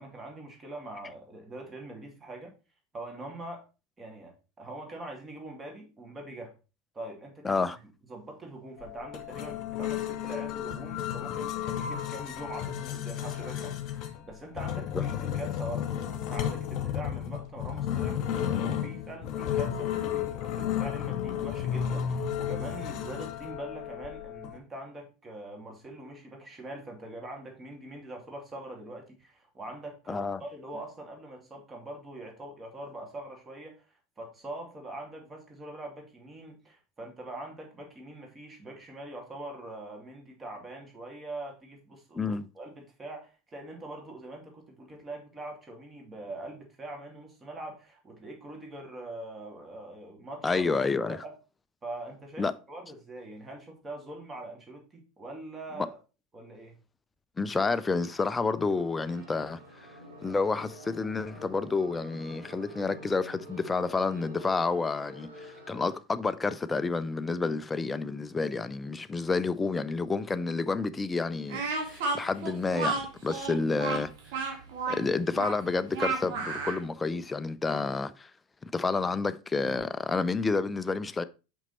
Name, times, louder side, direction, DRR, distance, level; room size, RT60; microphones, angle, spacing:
voice 1, 0.0-2.5 2.9-3.6 4.0-6.5 6.9-7.8 8.1-18.2 18.6-50.7 51.1-51.3 51.8-56.0 56.3-56.7, right 2 dB, 20° right, 2.4 m, -43 dB
voice 2, 7.4-7.8 14.9-15.0 30.1-30.4 42.1-42.5 50.4-51.2 52.4-52.5 57.4-59.9 60.2-74.1 74.9-78.3 78.6-81.2, left 4 dB, 15° left, 0.5 m, -29 dB
sound 1, 8.8-24.6, left 10 dB, 45° left, 1.1 m, -33 dB
sound 2, 58.5-65.9, equal, 75° right, 1.8 m, -48 dB
Speech, 71.5-76.8, right 4 dB, 55° right, 1.6 m, -32 dB
5.9 x 5.5 x 4.2 m
figure-of-eight pair, 80°, 0 cm